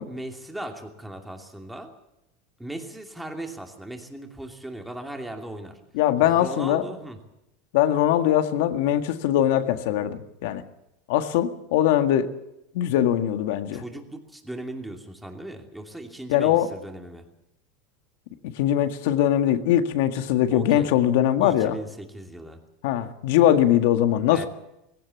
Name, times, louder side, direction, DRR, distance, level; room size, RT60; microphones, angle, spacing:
voice 1, 0.0-1.9 2.6-5.8 6.2-7.2 13.7-17.2 20.5-20.9 21.4-22.6 24.3-24.5, right 1 dB, 5° right, 4 dB, 2.7 m, -38 dB
voice 2, 5.9-6.8 7.7-10.6 11.1-12.3 12.7-13.8 16.3-16.7 18.6-21.8 22.8-24.5, left 11 dB, 70° left, 9 dB, 1.7 m, -21 dB
19.0 x 17.0 x 8.5 m, 0.86 s
supercardioid pair, 145°, 0 cm